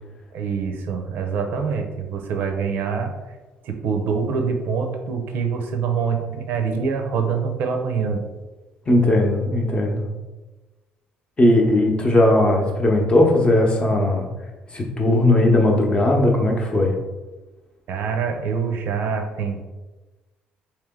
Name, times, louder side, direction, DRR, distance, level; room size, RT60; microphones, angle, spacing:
voice 1, 0.3-3.1 3.6-8.3 17.9-19.6, right 6 dB, 70° right, 4 dB, 0.5 m, -25 dB
voice 2, 8.9-10.1 11.4-14.3 14.7-16.9, left 1 dB, 25° left, 1 dB, 0.8 m, -18 dB
3.3 x 2.9 x 3.6 m, 1.2 s
cardioid pair, 90°, 4 cm